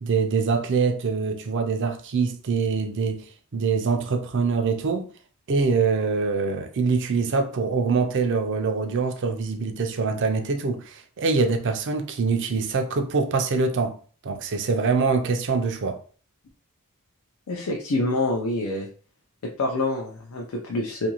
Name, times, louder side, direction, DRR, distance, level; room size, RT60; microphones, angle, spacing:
voice 1, 0.0-3.3 3.5-5.1 5.5-14.0 14.2-16.0, right 4 dB, 55° right, 0.5 m, -24 dB
voice 2, 17.5-18.9 19.6-21.1, left 2 dB, 65° left, 0.5 m, -26 dB
2.7 x 2.5 x 2.9 m
head